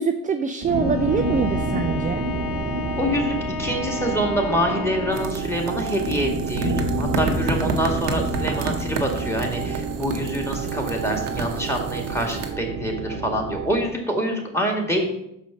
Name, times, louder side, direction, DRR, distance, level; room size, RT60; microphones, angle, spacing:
voice 1, 0.0-2.3, right 5 dB, 20° right, 6 dB, 0.4 m, -24 dB
sound 1, 0.6-13.9, right 3 dB, 40° right, 1.0 m, -28 dB
Bowed string instrument, 0.7-5.5, left 6 dB, 75° left, 1.2 m, -33 dB
voice 2, 3.0-15.1, equal, 5° left, 2 dB, 1.9 m, -26 dB
sound 2, 5.1-12.5, right 3 dB, 85° right, 0.9 m, -32 dB
6.1 x 5.1 x 5.0 m, 0.82 s
hypercardioid pair, 60°, 45 cm